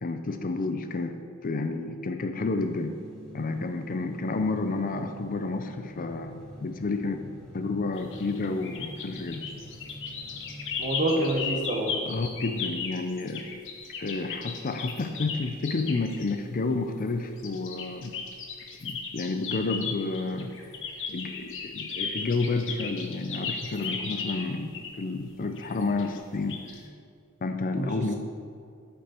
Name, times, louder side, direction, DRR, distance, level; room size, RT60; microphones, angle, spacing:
voice 1, 0.0-3.0 3.3-6.3 6.6-7.2 7.5-9.4 12.0-13.5 14.0-18.2 18.8-20.5 21.1-26.6 27.4-28.1, left 3 dB, 40° left, 7 dB, 0.5 m, -30 dB
sound 1, 2.6-10.8, equal, 5° left, 1.9 m, -46 dB
sound 2, 8.0-16.3 17.4-25.0 25.6-26.2 26.5-26.8, left 5 dB, 60° left, 1.1 m, -36 dB
voice 2, 10.8-11.9 27.8-28.2, right 1 dB, 35° right, 0 dB, 1.3 m, -27 dB
12.5 x 5.2 x 4.4 m, 2.4 s
head